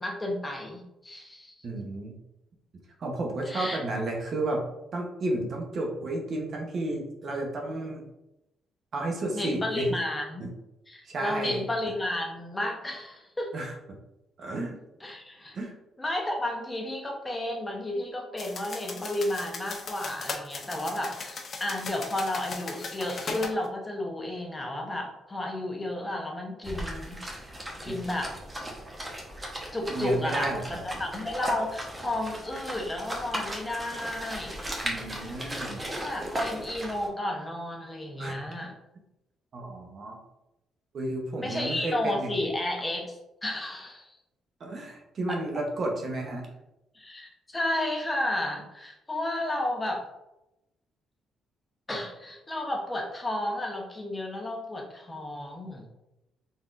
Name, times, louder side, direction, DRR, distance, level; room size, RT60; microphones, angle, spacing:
voice 1, 0.0-1.5 3.5-3.8 9.3-10.4 10.9-13.6 15.0-15.6 16.0-27.4 27.8-28.3 29.7-34.6 35.8-38.7 41.4-44.1 46.9-50.0 51.9-55.9, left 1 dB, 20° left, 1 dB, 0.9 m, -32 dB
voice 2, 1.6-2.1 3.0-4.6 4.9-8.1 8.9-9.9 10.4-10.5 11.0-11.9 13.5-13.7 14.4-14.8 15.5-15.7 27.9-28.0 29.9-30.8 34.8-35.9 38.2-38.4 39.5-40.2 40.9-42.4 44.6-46.5, right 2 dB, 55° right, 1 dB, 0.9 m, -32 dB
sound 1, 18.4-23.6, left 4 dB, 50° left, 0.6 m, -38 dB
sound 2, 26.6-37.1, right 1 dB, 20° right, 1.0 m, -36 dB
4.1 x 3.6 x 2.5 m, 0.91 s
cardioid pair, 90°, 0 cm